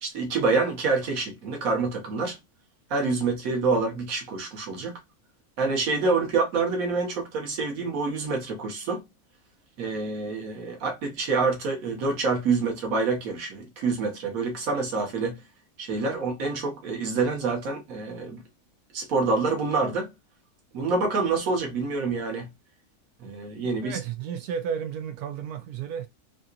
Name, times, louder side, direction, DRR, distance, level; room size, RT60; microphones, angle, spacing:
voice 1, 0.0-2.4 2.9-5.0 5.6-9.0 9.8-15.4 15.8-18.4 18.9-20.1 20.7-22.5 23.2-24.0, right 4 dB, 65° right, 1.4 m, -27 dB
voice 2, 23.8-26.1, right 7 dB, 80° right, 1.2 m, -32 dB
3.4 x 2.8 x 2.4 m
omnidirectional pair, 1.6 m